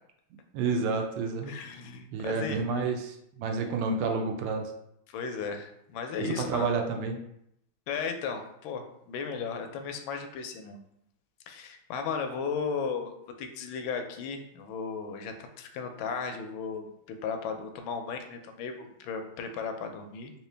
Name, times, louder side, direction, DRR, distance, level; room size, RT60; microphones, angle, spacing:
voice 1, 0.5-1.5 2.1-4.7 6.2-7.2, right 4 dB, 85° right, 4 dB, 1.4 m, -30 dB
voice 2, 1.5-2.9 5.1-6.7 7.9-10.8 11.5-13.1 13.4-16.9 17.2-20.3, left 5 dB, 75° left, 5 dB, 1.3 m, -35 dB
3.7 x 2.8 x 3.3 m, 0.77 s
omnidirectional pair, 2.3 m